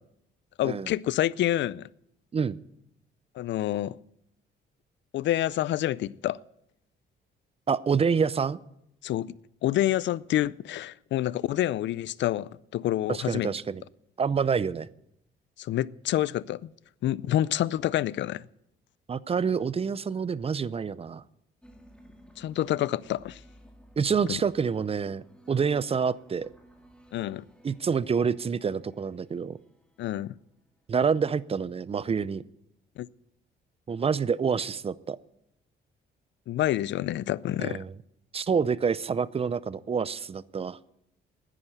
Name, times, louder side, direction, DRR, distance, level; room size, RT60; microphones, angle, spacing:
voice 1, 0.6-1.9 3.4-4.0 5.1-6.4 9.0-9.3 9.6-13.5 15.6-16.7 17.0-18.4 22.4-23.4 24.3-24.4 27.1-27.5 30.0-30.3 33.0-33.1 36.5-37.8, left 13 dB, 65° left, 0.5 m, -28 dB
voice 2, 7.7-8.6 13.1-13.8 14.2-14.9 19.1-21.2 24.0-26.5 27.6-29.6 30.9-32.4 33.9-35.2 37.6-37.9 38.3-40.8, right 6 dB, 30° right, 0.5 m, -27 dB
sound 1, 21.6-30.6, equal, 5° left, 2.0 m, -56 dB
10.0 x 9.8 x 9.1 m
cardioid pair, 90°, 20 cm